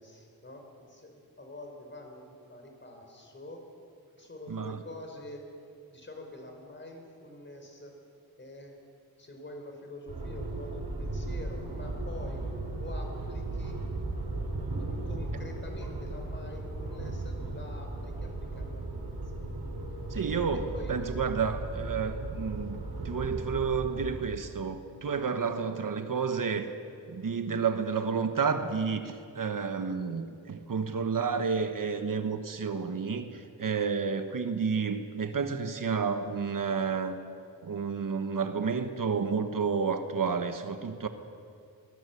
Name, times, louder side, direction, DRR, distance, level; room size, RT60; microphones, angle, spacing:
voice 1, 0.0-3.6 4.2-5.5 5.9-8.0 8.4-8.8 9.2-12.4 12.6-13.8 14.8-19.5 20.5-20.9 23.2-23.3, left 1 dB, 30° left, 3 dB, 4.6 m, -46 dB
voice 2, 4.5-4.8 20.1-26.7 27.1-37.2 37.6-41.1, right 5 dB, 60° right, 8 dB, 1.3 m, -30 dB
sound 1, 10.1-24.2, right 2 dB, 80° right, 5.2 m, -36 dB
23.0 x 19.5 x 8.4 m, 2.4 s
wide cardioid pair, 135°, 37 cm